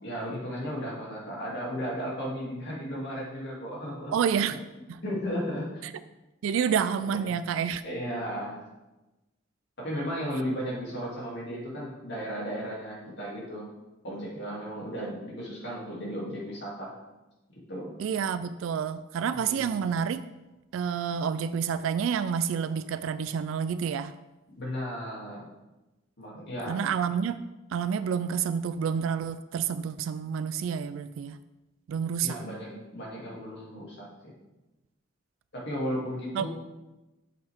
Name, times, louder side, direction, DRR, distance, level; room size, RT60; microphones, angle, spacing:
voice 1, 0.0-4.1 5.0-5.8 7.0-7.2 7.8-8.6 9.8-13.7 14.0-17.0 17.7-18.0 19.3-19.9 24.6-25.5 26.2-26.8 32.2-34.3 35.5-36.5, equal, 60° left, -5 dB, 2.6 m, -35 dB
voice 2, 4.1-4.6 4.9-5.0 6.4-7.8 18.0-20.2 20.7-24.1 26.7-27.4 27.7-31.4 31.9-32.4 36.3-36.5, right 7 dB, 75° right, 13 dB, 0.3 m, -29 dB
7.8 x 6.8 x 3.5 m, 1.1 s
head